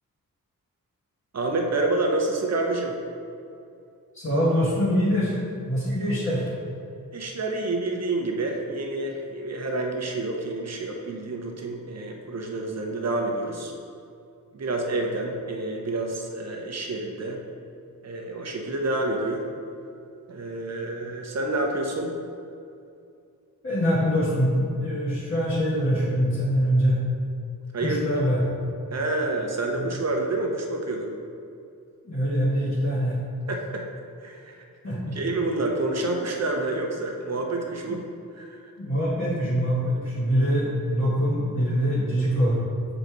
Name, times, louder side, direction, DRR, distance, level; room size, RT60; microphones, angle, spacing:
voice 1, 1.3-3.0 7.1-13.7 14.5-17.4 18.0-19.4 20.3-22.1 27.7-28.0 28.9-31.1 33.5-33.8 34.2-34.6 35.1-38.1 38.3-38.6, right 2 dB, 45° right, 1 dB, 0.9 m, -28 dB
voice 2, 4.1-5.4 5.7-6.4 23.6-27.0 27.8-28.4 29.7-29.8 32.0-33.2 34.8-35.1 38.8-42.6, equal, 35° left, -10 dB, 1.5 m, -24 dB
7.3 x 4.0 x 4.7 m, 2.5 s
wide cardioid pair, 130°, 35 cm